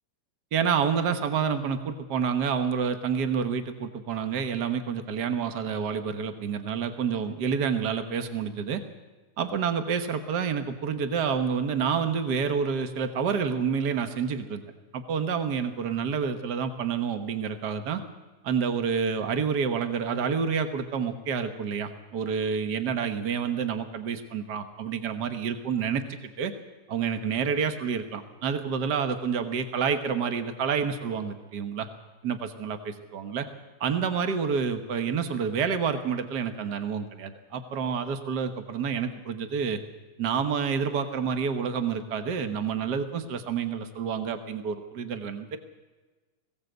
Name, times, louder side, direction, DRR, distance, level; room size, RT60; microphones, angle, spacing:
voice 1, 0.5-8.8 9.4-14.6 14.9-18.0 18.4-26.5 26.9-31.9 32.2-33.4 33.8-39.8 40.2-45.6, right 6 dB, 80° right, 8 dB, 0.9 m, -28 dB
20.5 x 16.5 x 8.0 m, 1.2 s
omnidirectional pair, 3.7 m